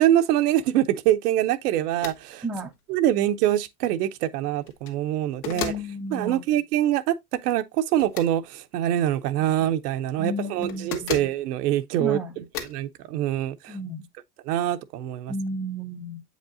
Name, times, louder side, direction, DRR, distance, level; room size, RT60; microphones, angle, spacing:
voice 1, 0.0-2.4 2.9-5.7 6.1-13.8 14.4-15.3, right 12 dB, 90° right, 0.8 m, -24 dB
sound 1, 2.0-2.2 2.6-2.7 4.6-5.0 5.4-5.9 8.0-8.3 10.6-11.4 12.5-12.8, left 8 dB, 65° left, 1.7 m, -34 dB
voice 2, 5.4-6.4 10.2-11.2 12.0-12.3 13.7-14.0 15.3-16.2, equal, 5° right, 0.4 m, -33 dB
7.9 x 5.2 x 2.5 m
supercardioid pair, 130°, 45 cm